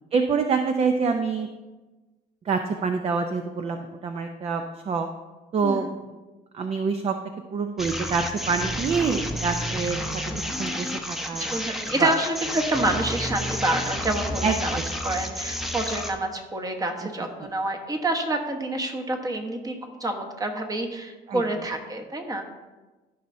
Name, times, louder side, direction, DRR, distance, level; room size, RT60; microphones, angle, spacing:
voice 1, 0.1-1.5 2.4-5.1 5.5-5.9 6.5-7.1 7.5-10.0 10.6-11.5 12.0-12.1 14.4-14.8 21.3-21.4, right 5 dB, 35° right, 6 dB, 0.5 m, -26 dB
sound 1, 7.8-16.1, equal, ahead, 0.8 m, -30 dB
voice 2, 11.4-22.4, right 1 dB, 20° right, 3 dB, 1.2 m, -28 dB
13.5 x 5.5 x 2.7 m, 1.2 s
cardioid pair, 110°, 17 cm